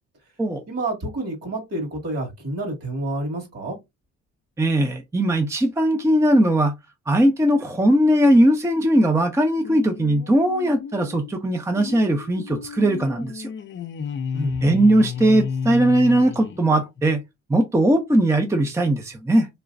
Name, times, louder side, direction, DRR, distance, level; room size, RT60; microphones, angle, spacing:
voice 1, 0.7-3.8 14.3-14.6, right 1 dB, 55° right, 2.0 m, -29 dB
voice 2, 4.6-6.7 7.1-13.5 14.6-17.2 17.5-19.5, right 1 dB, 10° right, 0.5 m, -19 dB
sound 1, 9.6-17.1, left 6 dB, 40° left, 0.5 m, -32 dB
3.3 x 2.9 x 2.5 m
cardioid pair, 90°, 30 cm